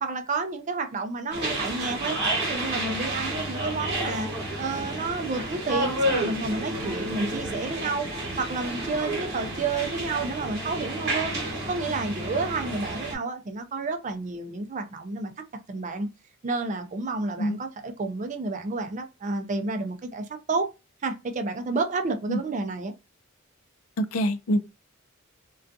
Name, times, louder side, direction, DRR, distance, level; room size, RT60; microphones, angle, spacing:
voice 1, 0.0-2.2 2.4-4.3 4.6-8.1 8.4-11.3 11.7-15.3 15.7-16.1 16.4-20.7 21.0-22.9, right 3 dB, 35° right, 0.4 m, -30 dB
sound 1, 1.3-13.1, right 1 dB, 50° right, 1.0 m, -30 dB
voice 2, 24.0-24.6, equal, 80° left, 0.4 m, -25 dB
2.4 x 2.2 x 2.5 m
head